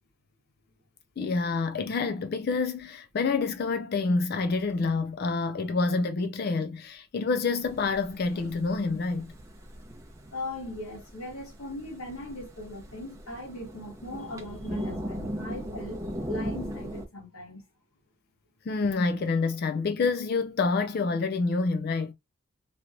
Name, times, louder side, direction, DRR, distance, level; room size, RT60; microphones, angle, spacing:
voice 1, 1.2-9.3 18.7-22.1, left 4 dB, 45° left, 0.3 m, -27 dB
sound 1, 7.6-17.0, equal, 15° right, 0.7 m, -39 dB
voice 2, 10.3-16.0 16.3-17.6, left 1 dB, 85° left, 1.6 m, -39 dB
3.2 x 2.9 x 2.5 m
head